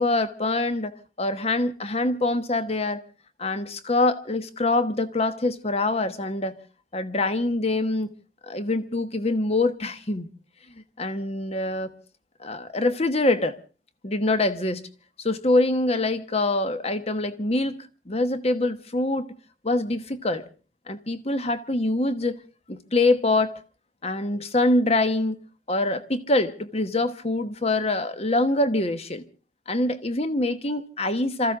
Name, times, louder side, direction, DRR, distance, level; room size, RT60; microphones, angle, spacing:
voice 1, 0.0-3.0 3.4-6.6 6.9-8.1 8.4-10.3 11.0-11.9 12.4-13.6 14.0-14.8 15.2-19.3 19.6-20.4 20.9-22.4 22.7-23.5 24.0-25.4 25.7-29.2 29.7-31.6, left 2 dB, 30° left, 1.1 m, -24 dB
27.0 x 14.5 x 3.6 m
head